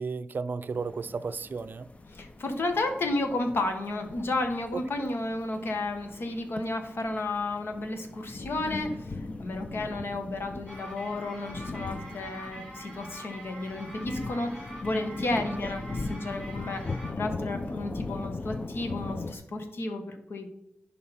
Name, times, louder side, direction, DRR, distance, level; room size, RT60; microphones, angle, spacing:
voice 1, 0.0-1.9 4.7-5.1 15.4-15.5, right 4 dB, 50° right, 0.4 m, -34 dB
sound 1, 0.7-19.3, left 3 dB, 35° left, 0.6 m, -39 dB
voice 2, 2.1-20.5, left 2 dB, 70° left, 1.5 m, -32 dB
sound 2, 10.7-17.1, right 1 dB, 15° left, 3.6 m, -45 dB
11.0 x 5.4 x 4.3 m
wide cardioid pair, 120°, 4 cm